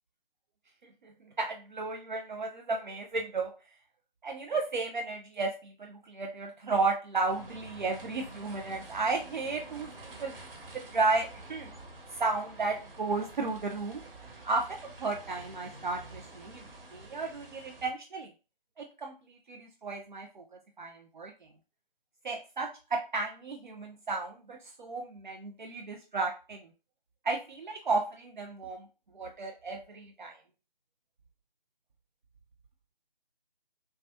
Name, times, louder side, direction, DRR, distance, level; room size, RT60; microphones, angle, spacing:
voice 1, 1.4-3.5 4.2-10.3 10.7-11.7 12.1-14.0 14.4-18.3 18.8-20.4 20.8-21.3 22.2-26.7 27.2-28.9 29.1-30.4, right 3 dB, 55° right, 2 dB, 0.6 m, -33 dB
sound 1, 7.3-17.9, right 2 dB, 70° right, 1.5 m, -48 dB
5.5 x 2.4 x 2.7 m, 0.32 s
hypercardioid pair, 170°, 29 cm